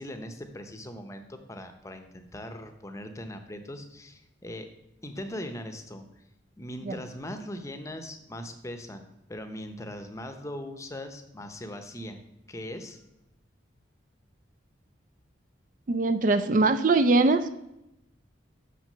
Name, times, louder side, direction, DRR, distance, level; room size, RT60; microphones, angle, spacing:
voice 1, 0.0-4.7 5.0-6.0 6.6-12.2 12.5-13.0, left 1 dB, 15° left, 7 dB, 0.7 m, -40 dB
voice 2, 15.9-17.5, right 3 dB, 45° right, 10 dB, 0.4 m, -22 dB
6.1 x 6.0 x 6.7 m, 0.87 s
head